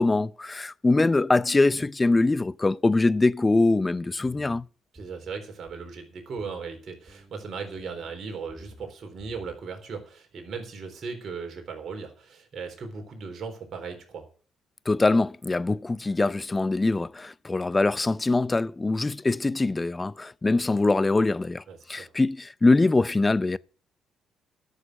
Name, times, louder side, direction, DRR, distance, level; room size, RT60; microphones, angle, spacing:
voice 1, 0.0-4.6 14.9-21.6 21.9-23.6, left 2 dB, 25° left, 0.5 m, -23 dB
sound 1, 4.2-4.6 4.9-5.3 5.7-6.0 6.4-6.7 7.1-7.4 7.8-8.1 8.5-8.8 9.2-9.6, equal, 30° right, 4.4 m, -51 dB
voice 2, 4.9-14.2 21.7-22.1, right 5 dB, 50° right, 3.8 m, -37 dB
12.0 x 6.6 x 7.7 m
hypercardioid pair, 50°, 0 cm